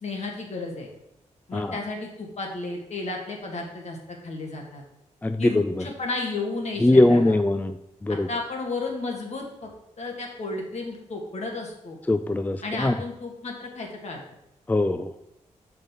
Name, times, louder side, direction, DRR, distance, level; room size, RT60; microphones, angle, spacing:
voice 1, 0.0-0.9 1.5-4.8 5.4-7.4 8.1-9.7 10.0-12.0 12.6-14.2, left 3 dB, 60° left, 1 dB, 1.9 m, -33 dB
voice 2, 5.2-5.8 6.8-7.8 8.0-8.3 12.1-12.9 14.7-15.1, left 1 dB, 15° left, 10 dB, 0.4 m, -21 dB
6.4 x 5.6 x 5.2 m, 0.83 s
cardioid pair, 85°, 13 cm